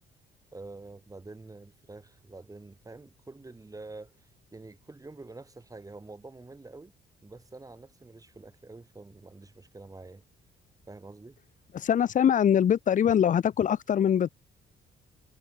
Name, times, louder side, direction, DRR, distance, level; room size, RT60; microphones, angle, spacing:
voice 1, 0.5-6.9 7.2-10.2 10.9-11.4, right 3 dB, 15° right, 1.5 m, -47 dB
voice 2, 11.7-14.3, left 9 dB, 40° left, 0.5 m, -23 dB
cardioid pair, 90°, 20 cm